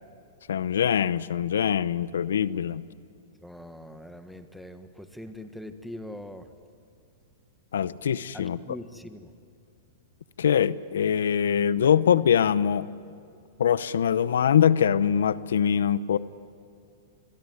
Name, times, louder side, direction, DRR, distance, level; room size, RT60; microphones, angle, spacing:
voice 1, 0.5-2.8 7.7-8.8 10.4-12.9 13.6-16.2, left 8 dB, 90° left, 17 dB, 0.8 m, -23 dB
voice 2, 3.4-6.4 8.3-9.2, left 1 dB, ahead, 8 dB, 1.5 m, -42 dB
25.5 x 22.5 x 9.5 m, 2.5 s
hypercardioid pair, 150°, 0 cm